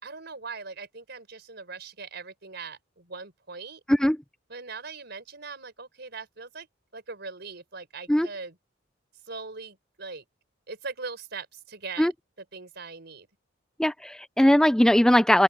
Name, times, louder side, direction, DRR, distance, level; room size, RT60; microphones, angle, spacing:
voice 1, 0.0-3.8 4.5-6.7 6.9-8.6 9.3-10.2 10.7-12.1 12.4-13.3, right 4 dB, 60° right, 5.1 m, -40 dB
voice 2, 13.8-15.4, equal, 5° left, 0.4 m, -20 dB
open air
head